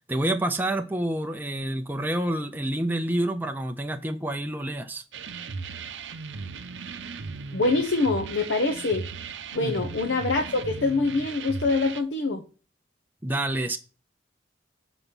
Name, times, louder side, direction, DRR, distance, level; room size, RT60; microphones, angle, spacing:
voice 1, 0.1-5.0 9.6-9.8 13.2-13.8, right 1 dB, 10° right, 5 dB, 0.5 m, -28 dB
sound 1, 5.1-12.0, right 5 dB, 80° right, 0.6 m, -37 dB
voice 2, 7.5-9.1 9.5-12.4, left 3 dB, 80° left, 5 dB, 0.8 m, -25 dB
7.3 x 4.0 x 5.3 m, 0.35 s
head